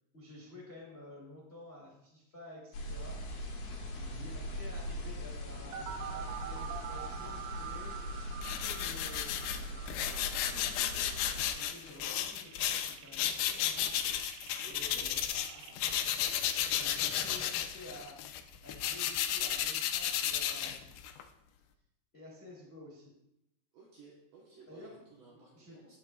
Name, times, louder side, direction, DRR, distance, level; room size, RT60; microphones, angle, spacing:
voice 1, 0.1-3.2 4.1-10.9 11.3-14.1 14.6-15.3 15.8-16.1 16.4-18.2 18.6-20.9 22.1-23.1 24.7-25.0 25.3-25.8, left 1 dB, 25° left, -5 dB, 1.4 m, -52 dB
sound 1, 2.7-11.5, left 1 dB, 60° left, 2.3 m, -41 dB
voice 2, 4.0-4.3 14.6-15.8 23.7-26.0, right 4 dB, 70° right, -3 dB, 2.3 m, -55 dB
sound 2, 5.7-15.7, right 9 dB, 85° right, 3.1 m, -46 dB
sound 3, 8.4-15.5 15.8-21.2, left 10 dB, 80° left, 2.8 m, -33 dB
16.5 x 6.4 x 2.4 m, 0.84 s
omnidirectional pair, 5.3 m